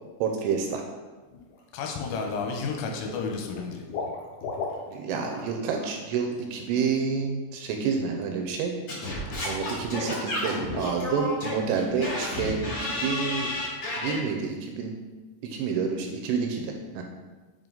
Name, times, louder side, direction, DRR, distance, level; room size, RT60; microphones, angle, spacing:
voice 1, 0.2-0.8 4.9-8.7 9.4-13.5 14.0-14.9 15.4-17.0, right 6 dB, 85° right, 3 dB, 3.0 m, -29 dB
Water / Liquid, 1.3-1.6 2.0-2.6 2.9-5.5 5.7-6.0 6.3-6.4, left 4 dB, 65° left, 2.8 m, -36 dB
voice 2, 1.7-3.9, left 4 dB, 90° left, 2 dB, 3.3 m, -31 dB
Singing / Scratching (performance technique), 8.9-14.2, left 1 dB, 40° left, 1.7 m, -31 dB
7.4 x 5.2 x 3.9 m, 1.3 s
omnidirectional pair, 5.9 m